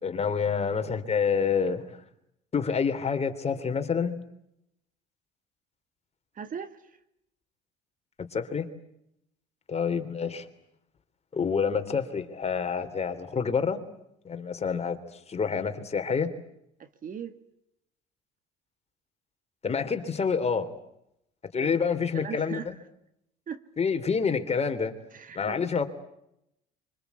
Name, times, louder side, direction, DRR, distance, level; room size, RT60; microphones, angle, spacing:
voice 1, 0.0-2.0 2.5-4.1 8.3-8.7 9.7-10.5 11.3-13.8 14.2-16.3 19.6-20.7 21.5-22.7 23.8-24.9 25.3-25.8, left 6 dB, 30° left, 7 dB, 3.3 m, -28 dB
voice 2, 6.3-7.0 16.8-17.4 21.5-21.8 22.1-22.8 23.5-23.6 25.1-25.8, right 7 dB, 40° right, 11 dB, 1.8 m, -39 dB
25.5 x 25.0 x 8.4 m, 0.81 s
hypercardioid pair, 75°, 20 cm